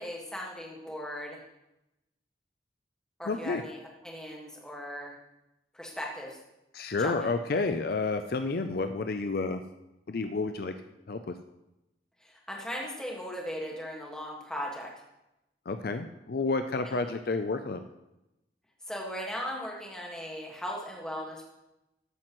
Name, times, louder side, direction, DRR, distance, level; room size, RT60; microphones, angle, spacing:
voice 1, 0.0-1.4 3.2-5.1 5.7-6.4 7.0-7.3 12.2-14.9 16.8-17.0 18.9-21.5, equal, 5° left, -2 dB, 1.7 m, -38 dB
voice 2, 3.2-3.6 6.7-9.6 10.1-10.7 11.1-11.3 15.7-17.8, left 3 dB, 50° left, 8 dB, 0.4 m, -30 dB
13.5 x 8.7 x 3.1 m, 0.93 s
head